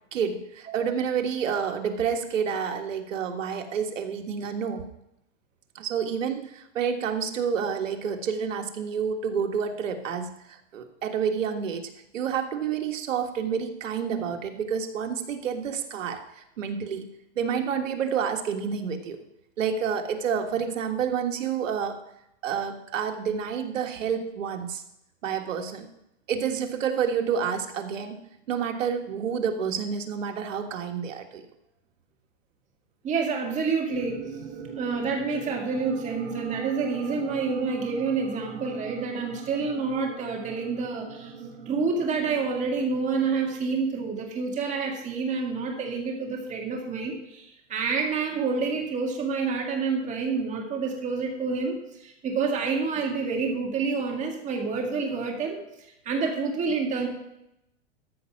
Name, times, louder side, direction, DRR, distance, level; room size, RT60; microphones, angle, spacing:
voice 1, 0.1-4.9 5.7-17.0 17.3-19.2 19.6-22.0 22.4-24.8 25.2-25.9 26.3-28.2 28.5-31.4, right 7 dB, 85° right, 5 dB, 1.6 m, -29 dB
voice 2, 33.0-34.5 34.8-41.3 41.7-55.6 56.1-57.1, right 4 dB, 20° right, 1 dB, 2.0 m, -28 dB
sound 1, 33.9-44.2, right 5 dB, 60° right, 2.0 m, -41 dB
13.5 x 5.3 x 5.9 m, 0.83 s
supercardioid pair, 150°, 37 cm